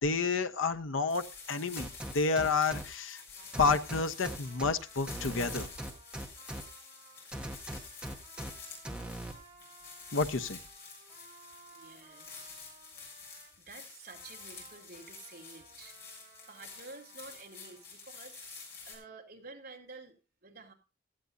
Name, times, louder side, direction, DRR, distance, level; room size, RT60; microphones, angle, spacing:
voice 1, 0.0-1.9 2.1-3.2 3.6-5.7 10.1-10.6, left 4 dB, 85° left, 8 dB, 0.9 m, -30 dB
sound 1, 1.1-18.9, left 5 dB, 55° left, 7.1 m, -49 dB
sound 2, 1.8-2.8 3.5-4.7 5.1-6.6 7.3-8.5 8.9-9.3, right 1 dB, 5° right, 1.4 m, -39 dB
Trumpet, 3.3-13.6 14.1-17.8, right 3 dB, 20° right, 6.9 m, -59 dB
voice 2, 11.7-12.6 13.3-20.7, right 3 dB, 50° right, -1 dB, 2.8 m, -51 dB
16.5 x 14.0 x 2.7 m, 0.31 s
head